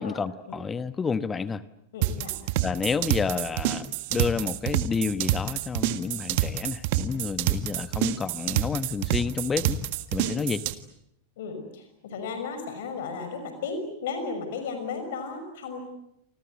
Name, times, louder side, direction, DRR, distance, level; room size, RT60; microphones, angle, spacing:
voice 1, 0.0-1.6 2.6-9.8 10.1-10.6, left 5 dB, 15° left, 15 dB, 1.1 m, -30 dB
voice 2, 1.9-2.3 10.2-10.3 11.4-15.8, left 4 dB, 55° left, 7 dB, 5.9 m, -34 dB
sound 1, 2.0-10.7, right 13 dB, 50° right, 1.7 m, -27 dB
29.0 x 26.0 x 7.9 m, 0.79 s
figure-of-eight pair, 90°, 0 cm